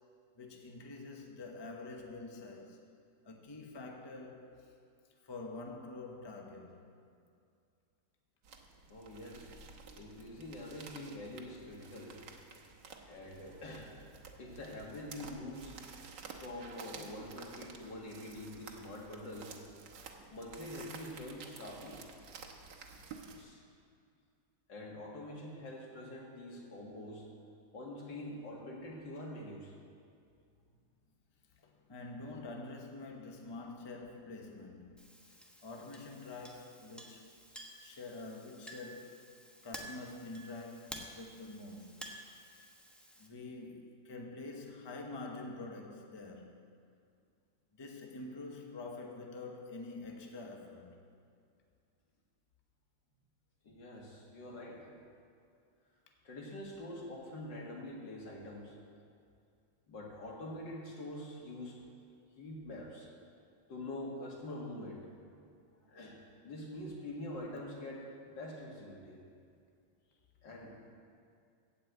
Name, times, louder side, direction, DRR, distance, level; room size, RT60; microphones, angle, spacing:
voice 1, 0.4-2.8 3.2-4.5 5.2-6.8 31.6-35.4 35.6-37.3 37.8-39.2 39.6-41.9 42.5-42.7 43.2-46.5 47.7-50.9, left 3 dB, 20° left, 2 dB, 0.8 m, -46 dB
sound 1, 8.4-23.4, right 5 dB, 80° right, 1.7 m, -52 dB
voice 2, 8.9-9.5 10.0-12.2 13.1-13.9 14.4-15.8 16.4-19.6 20.3-22.0 23.4-23.6 24.7-27.2 27.7-29.7 53.6-54.8 56.2-58.7 59.9-61.8 62.4-63.1 63.7-65.0 65.9-66.2 66.4-68.0 68.4-69.2 70.4-70.9, left 1 dB, 80° left, -2 dB, 2.7 m, -45 dB
Chink clink, 35.0-43.3, equal, ahead, 0.6 m, -52 dB
15.5 x 5.5 x 8.0 m, 2.4 s
omnidirectional pair, 1.9 m